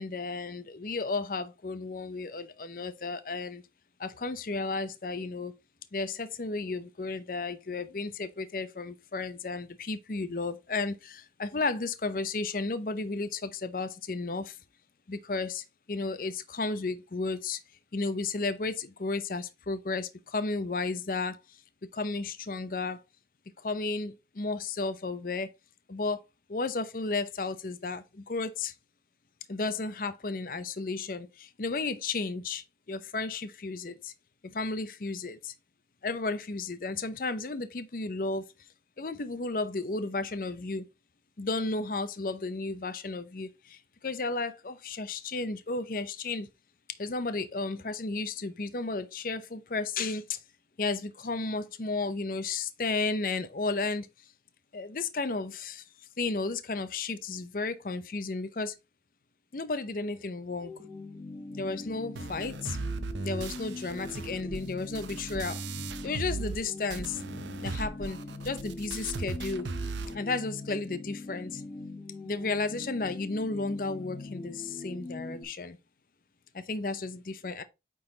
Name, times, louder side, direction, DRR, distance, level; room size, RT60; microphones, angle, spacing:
voice 1, 0.0-3.6 4.0-5.5 5.9-14.6 15.1-17.6 17.9-21.4 21.8-23.0 23.6-25.5 25.9-26.2 26.5-28.7 29.5-34.1 34.4-35.5 36.0-38.5 39.0-40.9 41.4-46.5 47.0-50.4 50.8-54.1 54.7-55.8 56.2-58.7 59.5-60.7 61.5-62.8 63.2-65.6 66.0-67.2 67.6-69.7 70.1-71.6 72.2-75.8 76.5-77.6, left 3 dB, 50° left, 0.6 m, -33 dB
sound 1, 60.6-75.4, left 2 dB, 30° left, 1.0 m, -42 dB
sound 2, 62.2-66.6 66.9-70.2, right 3 dB, 85° right, 0.7 m, -37 dB
8.7 x 3.9 x 3.9 m
head